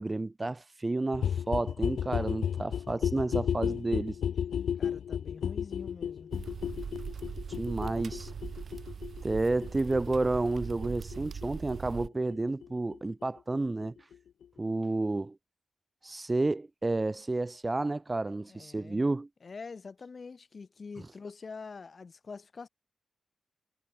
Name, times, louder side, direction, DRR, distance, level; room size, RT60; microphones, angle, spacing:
voice 1, 0.0-4.2 7.6-8.3 9.2-14.0 14.6-15.4 16.0-19.3, right 2 dB, 20° right, 1.1 m, -31 dB
sound 1, 1.1-12.7 12.9-13.0 13.2-13.3 13.5-13.6 13.8-13.9 14.1-14.2 14.4-14.5, left 8 dB, 90° left, 1.6 m, -34 dB
voice 2, 4.8-6.3 18.5-19.0 19.4-22.7, left 4 dB, 35° left, 1.8 m, -45 dB
sound 2, 6.3-12.1, right 6 dB, 55° right, 0.8 m, -41 dB
wide cardioid pair, 155°, 0 cm